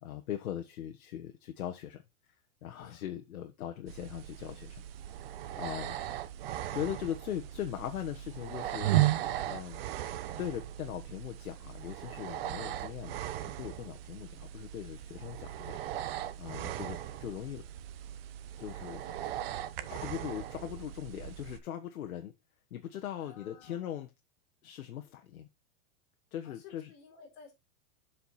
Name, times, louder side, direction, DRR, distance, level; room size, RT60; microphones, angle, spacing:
voice 1, 0.0-2.0 2.6-4.8 5.6-5.9 6.7-8.9 9.4-9.8 10.4-15.8 16.4-17.6 18.6-19.0 19.9-22.3 22.7-24.1 24.6-25.5 26.3-26.9, left 11 dB, 80° left, 1.4 m, -40 dB
sound 1, 3.9-21.6, right 13 dB, 45° right, 0.8 m, -37 dB
voice 2, 5.8-6.2 16.6-16.7 19.0-19.5 19.7-20.4 23.1-24.0 26.4-27.5, left 5 dB, 35° left, 3.8 m, -56 dB
7.3 x 5.2 x 4.3 m
supercardioid pair, 160°, 42 cm